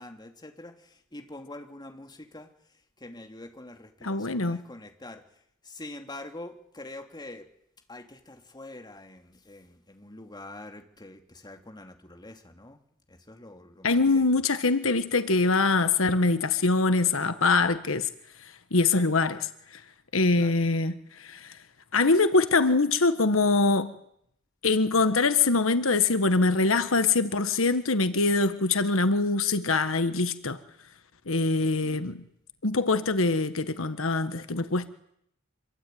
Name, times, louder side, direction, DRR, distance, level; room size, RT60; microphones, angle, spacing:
voice 1, 0.0-2.5 3.0-5.2 5.6-7.5 7.9-12.8 13.1-14.2 20.3-20.6 31.6-32.1, left 2 dB, 20° left, 2.9 m, -45 dB
voice 2, 4.0-4.6 13.8-18.1 18.7-19.4 20.1-20.9 21.2-21.4 21.9-23.9 24.6-30.6 31.3-32.2 32.6-34.9, left 3 dB, 80° left, 1.5 m, -23 dB
26.5 x 23.0 x 9.4 m
head